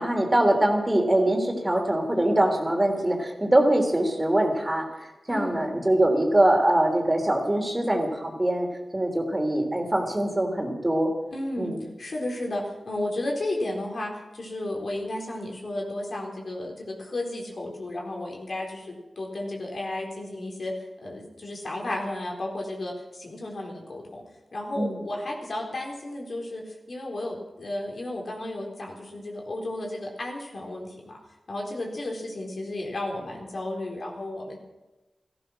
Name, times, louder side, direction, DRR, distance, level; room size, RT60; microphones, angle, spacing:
voice 1, 0.0-8.7 8.9-11.1 11.6-11.8 24.8-25.0, right 1 dB, 20° right, 2 dB, 3.3 m, -23 dB
voice 2, 5.3-5.6 11.3-20.7 21.0-24.2 24.5-31.2 31.5-34.6, left 1 dB, 60° left, -1 dB, 4.1 m, -33 dB
15.0 x 15.0 x 6.4 m, 1.1 s
wide cardioid pair, 65°, 0 cm